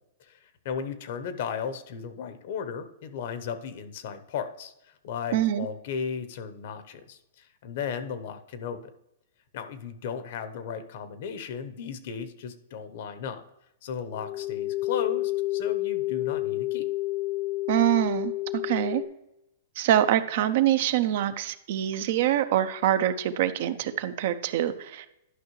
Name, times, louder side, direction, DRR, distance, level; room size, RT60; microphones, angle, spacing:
voice 1, 0.6-8.8 9.5-13.4 13.8-16.9, left 7 dB, 55° left, 11 dB, 0.9 m, -35 dB
voice 2, 5.3-5.7 17.7-19.0 19.8-25.2, right 12 dB, 55° right, 11 dB, 0.6 m, -25 dB
sound 1, 14.1-19.0, left 18 dB, 10° left, 0.6 m, -30 dB
11.0 x 5.6 x 3.1 m, 0.86 s
hypercardioid pair, 155°, 0 cm